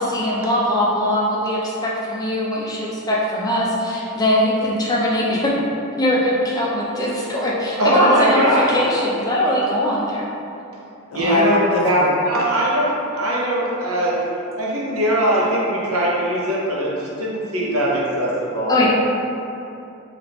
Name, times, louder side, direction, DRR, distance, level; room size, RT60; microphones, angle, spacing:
voice 1, 0.0-5.5 6.0-10.3 11.2-11.4 18.7-18.9, left 1 dB, 15° left, -5 dB, 0.4 m, -21 dB
voice 2, 7.8-8.7 11.1-11.6 11.8-14.2 14.6-18.7, equal, 85° right, -4 dB, 0.7 m, -20 dB
voice 3, 11.1-12.1, left 2 dB, 85° left, -1 dB, 0.5 m, -22 dB
3.4 x 2.4 x 2.8 m, 2.7 s
head